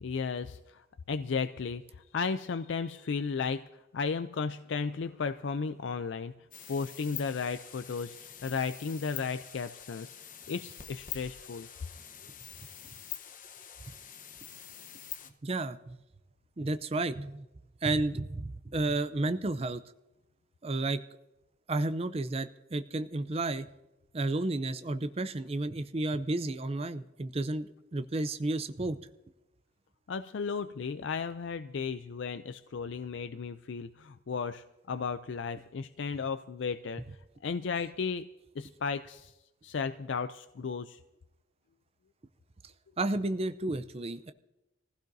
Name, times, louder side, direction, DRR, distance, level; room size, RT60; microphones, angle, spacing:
voice 1, 0.0-3.6 3.9-6.3 6.7-10.1 10.5-11.7 30.1-37.0 37.4-38.3 38.6-39.3 39.6-41.0, left 5 dB, 65° left, 11 dB, 0.4 m, -34 dB
sound 1, 6.5-15.3, left 9 dB, 45° left, 1.0 m, -45 dB
voice 2, 15.4-16.0 16.6-17.5 17.8-19.8 20.6-21.0 21.7-23.7 24.1-29.0 43.0-44.3, right 2 dB, 30° right, 11 dB, 0.5 m, -32 dB
24.5 x 16.0 x 2.7 m, 0.96 s
head